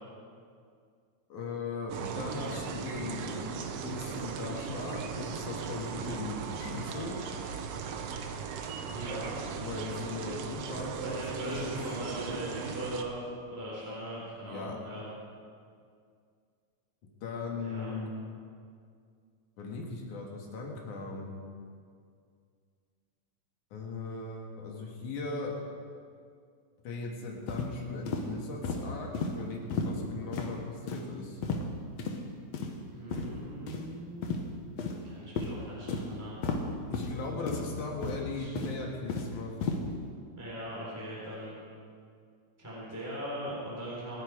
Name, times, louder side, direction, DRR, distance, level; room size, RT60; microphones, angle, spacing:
voice 1, 1.3-3.4 3.8-7.2 9.6-11.9 13.8-13.9 14.4-14.8 17.2-18.1 19.6-21.3 23.7-25.5 26.8-31.4 36.9-39.7, left 3 dB, 90° left, 0 dB, 3.3 m, -38 dB
sound 1, 1.9-13.0, right 6 dB, 65° right, 1.7 m, -37 dB
voice 2, 8.8-9.9 11.0-13.2 13.5-15.0 17.6-17.9 32.9-34.3 35.0-36.4 38.4-38.5 40.4-41.6 42.6-44.2, equal, 5° right, -7 dB, 3.7 m, -40 dB
sound 2, 27.5-27.7 28.1-28.2 28.6-28.8 29.1-29.3 29.7-29.9 30.3-30.5 30.9-31.0 31.4-31.7 32.0-32.1 32.5-32.7 33.1-33.2 33.7-33.8 34.2-34.4 34.8-35.0 35.4-35.5 35.9-36.0 36.4-36.6 36.9-37.1 37.5-37.7 38.0-38.2 38.6-39.3 39.6-39.8, left 4 dB, 65° left, 2.4 m, -33 dB
26.5 x 9.0 x 4.9 m, 2.2 s
omnidirectional pair, 3.4 m